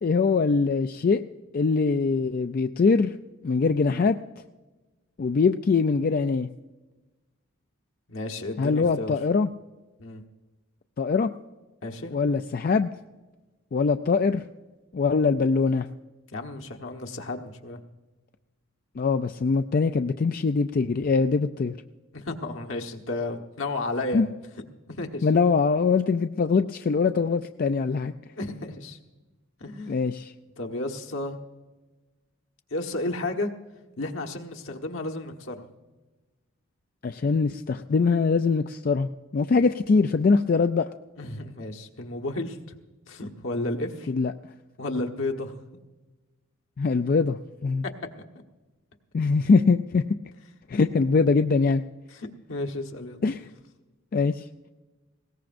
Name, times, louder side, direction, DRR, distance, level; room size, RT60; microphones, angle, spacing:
voice 1, 0.0-1.2 1.5-3.1 3.4-4.2 5.2-6.5 8.6-9.5 11.0-11.3 12.1-12.9 13.7-14.4 14.9-15.9 19.0-21.7 24.1-24.3 25.2-28.1 29.9-30.3 37.0-40.9 44.1-44.3 46.8-47.8 49.1-50.0 50.7-51.8 53.2-53.5 54.1-54.4, left 4 dB, 45° left, 8 dB, 0.4 m, -23 dB
voice 2, 8.1-9.1 10.0-10.2 11.8-12.1 16.3-17.8 22.1-24.3 24.9-25.3 28.4-29.0 29.6-29.9 30.6-31.4 32.7-33.5 34.0-35.7 41.2-42.6 43.1-44.1 44.8-45.5 52.1-53.2, left 2 dB, 70° left, 3 dB, 1.3 m, -32 dB
20.5 x 18.0 x 2.6 m, 1.2 s
head